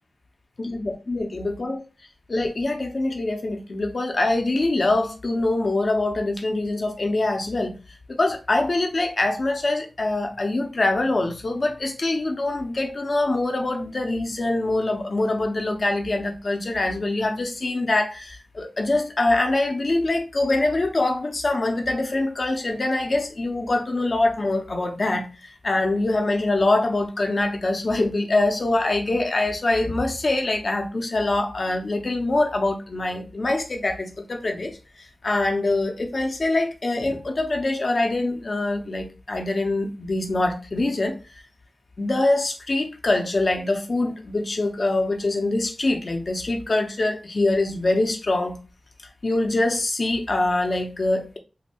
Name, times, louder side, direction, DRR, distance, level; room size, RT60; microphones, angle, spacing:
voice 1, 0.6-1.8 2.3-7.8 8.1-41.2 42.0-48.6 49.2-51.4, left 2 dB, 50° left, 0.8 m, -24 dB
2.7 x 2.6 x 4.3 m
wide cardioid pair, 85°, 0 cm